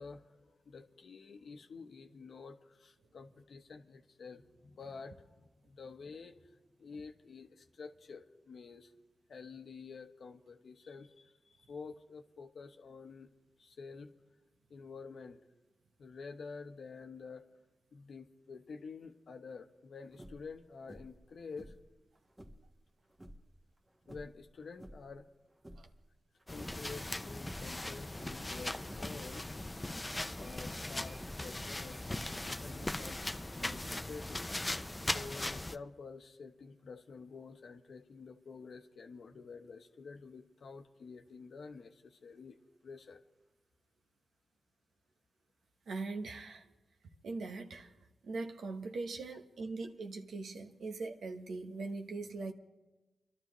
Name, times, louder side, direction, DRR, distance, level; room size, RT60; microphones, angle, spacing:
voice 1, 0.0-6.5 6.8-8.9 9.3-13.3 13.6-14.1 14.7-15.4 16.0-17.4 17.9-21.7 24.1-25.3 26.5-29.5 30.4-34.5 35.1-43.2, left 4 dB, 75° left, 6 dB, 0.9 m, -49 dB
sound 1, 20.1-20.5 20.9-21.3 21.5-22.7 23.1-23.5 24.0-25.2 25.5-26.0 26.4-27.2 27.5-27.8 28.1-28.5 28.9-29.2 29.5-29.9 30.4-30.7 31.1-31.5 32.0-33.2 33.7-34.2, equal, 25° right, 1.4 m, -53 dB
sound 2, 26.5-35.8, left 1 dB, 25° left, 0.6 m, -39 dB
voice 2, 45.9-46.7 47.2-47.9 48.2-52.5, right 3 dB, 85° right, 4 dB, 1.0 m, -41 dB
30.0 x 12.0 x 3.1 m, 1.1 s
cardioid pair, 45°, 0 cm